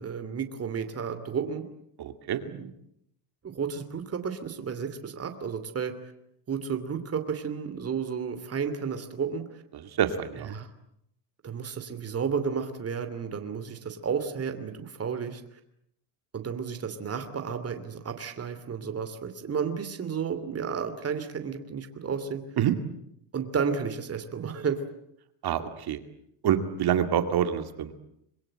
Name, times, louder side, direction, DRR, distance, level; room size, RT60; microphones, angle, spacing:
voice 1, 0.0-1.7 2.4-2.7 3.4-5.9 6.5-9.6 10.4-10.7 11.4-15.4 16.3-22.4 23.3-24.8, right 6 dB, 30° right, 8 dB, 2.9 m, -32 dB
voice 2, 2.0-2.4 10.0-10.5 22.6-22.7 25.4-26.0 26.4-27.9, right 10 dB, 50° right, 8 dB, 2.4 m, -26 dB
26.0 x 22.5 x 8.9 m, 0.76 s
cardioid pair, 110°, 47 cm